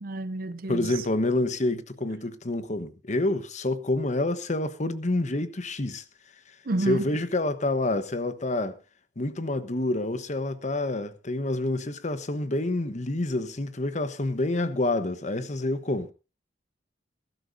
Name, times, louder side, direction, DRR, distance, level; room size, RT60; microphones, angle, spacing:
voice 1, 0.0-1.0 6.6-7.1, right 2 dB, 55° right, 0.8 m, -30 dB
voice 2, 0.7-6.0 6.9-8.8 9.2-16.1, left 2 dB, 45° left, 1.2 m, -28 dB
21.0 x 12.5 x 2.7 m
head